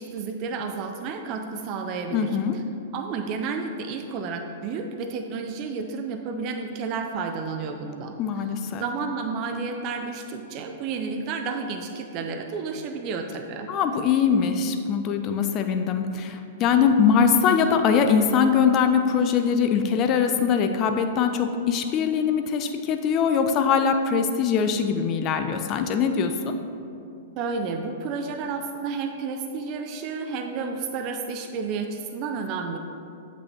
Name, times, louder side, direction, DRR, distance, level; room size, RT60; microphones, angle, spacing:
voice 1, 0.0-2.4 2.9-8.2 8.7-13.7 27.4-32.8, right 4 dB, 40° right, 5 dB, 0.5 m, -31 dB
voice 2, 2.1-2.6 8.2-8.8 13.7-26.5, left 6 dB, 35° left, 7 dB, 0.4 m, -22 dB
7.8 x 6.0 x 2.8 m, 2.6 s
hypercardioid pair, 110°, 0 cm